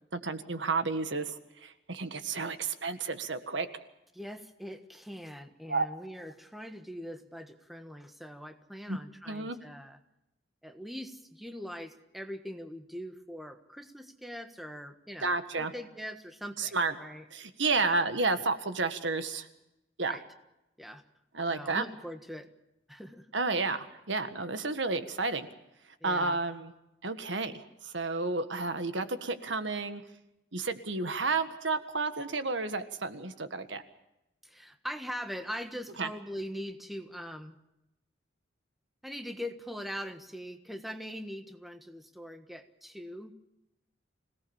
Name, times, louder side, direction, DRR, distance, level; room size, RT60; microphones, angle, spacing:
voice 1, 0.1-3.7 5.7-5.9 8.9-9.0 9.3-9.6 15.2-15.7 16.6-16.9 17.3-19.5 20.0-20.1 21.3-21.8 23.3-25.5 26.0-26.7 27.0-27.5 27.8-30.0 30.5-33.8 36.0-36.1, right 3 dB, 75° right, 9 dB, 1.7 m, -31 dB
voice 2, 4.1-10.0 10.6-17.2 17.7-18.0 20.1-20.2 20.8-21.0 21.5-22.5 22.9-23.3 26.0-26.4 34.4-37.5 39.0-43.3, equal, ahead, 6 dB, 1.4 m, -42 dB
26.0 x 18.0 x 7.2 m, 0.90 s
head